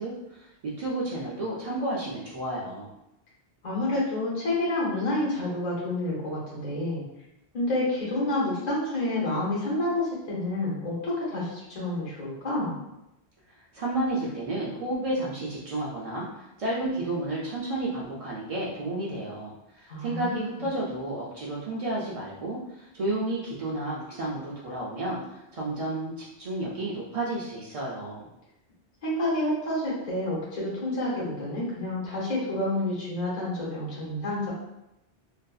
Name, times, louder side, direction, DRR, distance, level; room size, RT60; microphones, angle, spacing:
voice 1, 0.0-2.9 13.7-28.3, right 1 dB, 65° right, -5 dB, 0.3 m, -32 dB
voice 2, 3.6-7.0 7.5-12.8 19.9-20.6 29.0-34.5, left 1 dB, 40° left, -7 dB, 0.9 m, -29 dB
2.6 x 2.5 x 2.3 m, 0.88 s
omnidirectional pair, 1.1 m